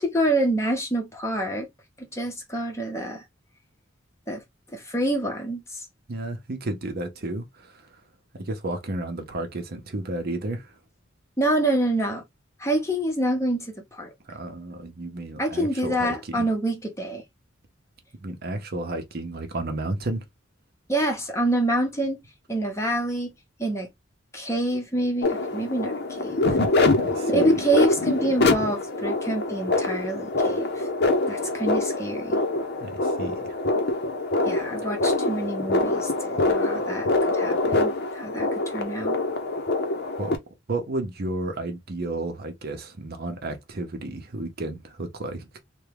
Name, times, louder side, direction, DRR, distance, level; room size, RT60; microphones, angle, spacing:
voice 1, 0.0-1.7 2.1-3.2 4.3-4.4 4.7-5.9 11.4-12.2 12.6-14.1 15.4-17.2 20.9-22.2 22.5-23.3 23.6-23.9 24.3-26.6 27.3-30.9 31.3-32.4 34.4-39.2, right 1 dB, 15° left, 0.9 m, -27 dB
voice 2, 6.1-7.9 8.3-10.7 14.3-16.4 18.2-20.2 27.1-27.5 32.8-33.6 40.2-40.3 40.7-45.6, right 2 dB, 55° right, 0.8 m, -32 dB
sound 1, 25.2-40.4, left 2 dB, 55° left, 0.7 m, -24 dB
3.5 x 2.3 x 3.3 m
head